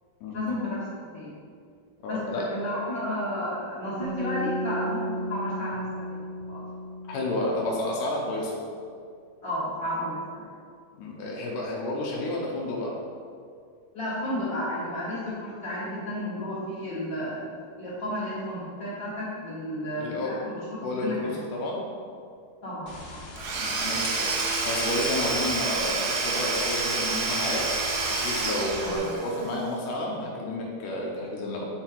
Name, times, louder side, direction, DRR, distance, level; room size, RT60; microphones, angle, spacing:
voice 1, 0.3-1.3 2.1-6.2 6.5-6.6 9.4-10.5 13.9-17.5 17.8-21.3 22.6-23.2 28.8-29.1, left 1 dB, 50° left, -11 dB, 1.3 m, -32 dB
voice 2, 2.0-2.5 7.1-8.5 10.9-12.9 20.0-20.3 20.8-21.8 23.5-27.6 28.1-31.7, left 1 dB, 90° left, -3 dB, 1.8 m, -31 dB
sound 1, 4.0-8.2, right 1 dB, 65° right, 2.1 m, -34 dB
sound 2, 22.9-29.0, left 2 dB, 65° left, 1.4 m, -41 dB
Domestic sounds home sounds / Tools, 23.4-29.5, right 3 dB, 85° right, 2.9 m, -28 dB
9.5 x 4.5 x 3.9 m, 2.2 s
omnidirectional pair, 5.0 m